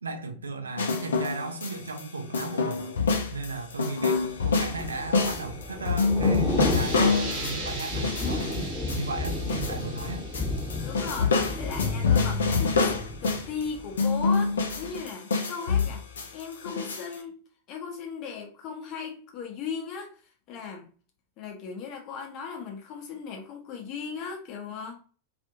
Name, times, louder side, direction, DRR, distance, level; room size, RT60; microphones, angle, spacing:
voice 1, 0.0-2.8 3.3-10.2, right 3 dB, 75° right, 0.5 m, -36 dB
sound 1, 0.8-2.0 2.3-10.1 10.3-13.6 14.0-17.1, left 4 dB, 65° left, 0.5 m, -26 dB
Thunder / Rain, 4.3-14.3 14.6-14.9, left 2 dB, 10° left, 0.9 m, -33 dB
sound 2, 6.3-11.7, right 3 dB, 35° right, 0.9 m, -40 dB
voice 2, 10.8-16.0 16.3-17.4 17.7-20.9 21.4-25.0, left 6 dB, 40° left, 0.8 m, -37 dB
2.6 x 2.5 x 2.6 m
figure-of-eight pair, 90°, 0 cm